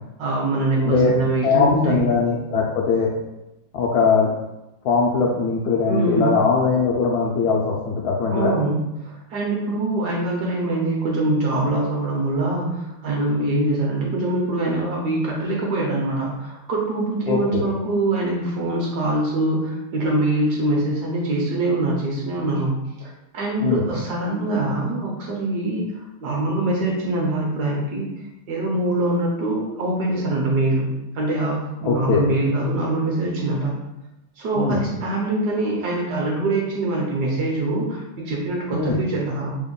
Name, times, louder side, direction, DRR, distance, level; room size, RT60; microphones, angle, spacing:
voice 1, 0.2-2.1 5.8-6.3 8.3-28.1 28.5-30.9 31.1-33.8 34.4-39.6, right 2 dB, 65° right, -3 dB, 1.1 m, -23 dB
voice 2, 0.8-1.2 1.4-3.1 3.7-4.3 4.8-8.5 17.3-17.6 23.6-23.9 31.8-32.2 34.6-34.8 38.7-39.0, left 5 dB, 85° left, -3 dB, 0.8 m, -20 dB
3.4 x 2.1 x 3.7 m, 0.93 s
omnidirectional pair, 2.2 m